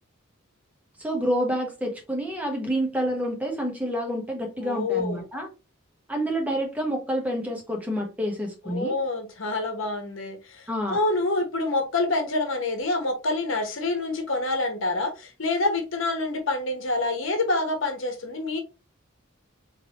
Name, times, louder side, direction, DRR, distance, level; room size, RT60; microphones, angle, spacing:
voice 1, 1.0-5.5 6.1-9.0 10.7-11.0, equal, 5° right, 1.0 m, -28 dB
voice 2, 4.6-5.2 8.6-18.6, left 2 dB, 65° left, 1.0 m, -27 dB
3.6 x 3.2 x 2.9 m
head